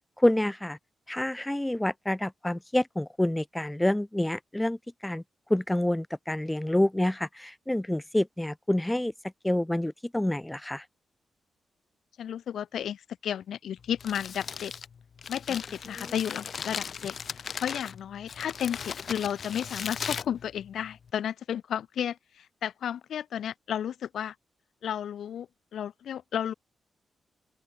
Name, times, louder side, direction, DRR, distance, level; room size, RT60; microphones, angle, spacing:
voice 1, 0.2-0.8 1.1-5.2 5.5-9.1 9.4-10.8, left 1 dB, 10° left, 1.1 m, -27 dB
voice 2, 12.2-14.7 15.3-17.1 17.6-24.3 24.8-26.5, left 9 dB, 75° left, 3.4 m, -33 dB
Crumpling crinkling, 13.8-21.1, left 6 dB, 50° left, 6.3 m, -38 dB
open air
cardioid pair, 115°, 0 cm